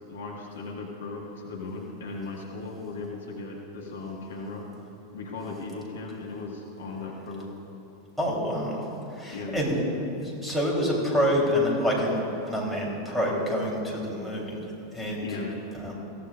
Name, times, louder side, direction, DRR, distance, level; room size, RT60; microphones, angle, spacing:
voice 1, 0.1-4.7 5.1-7.5 9.3-9.6 15.2-15.6, left 3 dB, 65° left, -1 dB, 1.8 m, -37 dB
voice 2, 8.2-9.8 10.2-12.2 12.5-14.6 14.9-15.4 15.8-15.9, equal, ahead, -4 dB, 3.8 m, -27 dB
22.0 x 16.0 x 2.6 m, 2.9 s
figure-of-eight pair, 90°, 0 cm